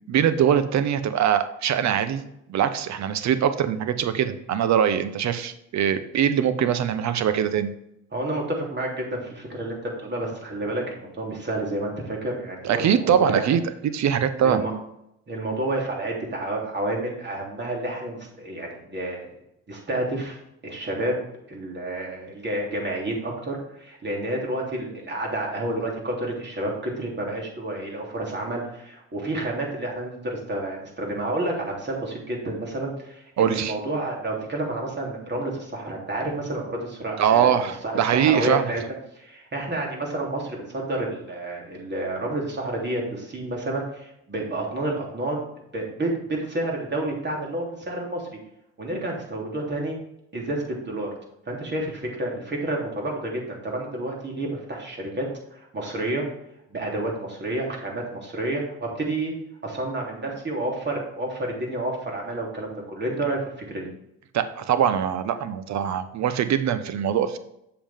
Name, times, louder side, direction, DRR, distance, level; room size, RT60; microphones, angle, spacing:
voice 1, 0.1-2.2 2.5-7.7 12.6-14.6 33.4-33.7 37.2-38.6 64.3-67.4, right 9 dB, 55° right, 12 dB, 0.9 m, -22 dB
voice 2, 8.1-13.6 14.4-14.7 15.3-19.3 19.7-20.4 20.6-21.1 21.5-38.8 39.1-45.4 45.7-48.4 48.8-50.0 50.3-51.1 51.5-56.2 56.7-59.3 59.6-63.9, right 1 dB, 35° right, -1 dB, 3.3 m, -30 dB
7.3 x 6.9 x 3.6 m, 0.79 s
supercardioid pair, 70°, 32 cm